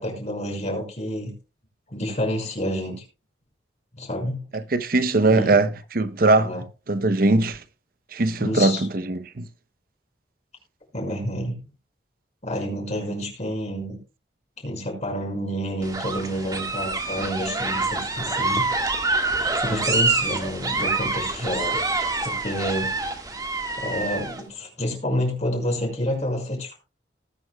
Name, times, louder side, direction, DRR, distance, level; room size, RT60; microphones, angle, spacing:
voice 1, 0.0-1.3 1.9-3.0 4.0-4.4 5.3-5.6 6.4-6.6 8.4-8.8 10.9-11.6 12.4-14.0 14.6-18.7 19.6-21.8 22.2-22.9 23.8-26.8, equal, 40° left, 5.7 m, -28 dB
voice 2, 4.5-5.7 5.9-6.6 6.9-7.6 8.1-9.5, right 2 dB, 55° right, 0.8 m, -20 dB
sound 1, 15.8-24.4, right 3 dB, 20° right, 1.7 m, -26 dB
19.5 x 9.6 x 2.3 m
head